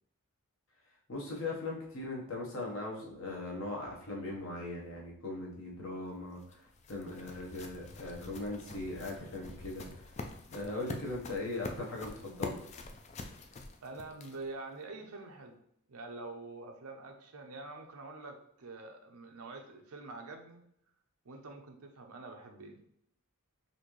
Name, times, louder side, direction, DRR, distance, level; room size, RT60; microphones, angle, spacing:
voice 1, 1.1-10.1 10.5-12.7, left 2 dB, 65° left, -2 dB, 1.1 m, -39 dB
sound 1, 6.0-14.6, left 3 dB, 30° left, 0.3 m, -46 dB
voice 2, 13.8-15.6 15.9-20.6 21.2-22.8, right 3 dB, 85° right, 4 dB, 0.7 m, -46 dB
4.2 x 2.6 x 3.1 m, 0.71 s
head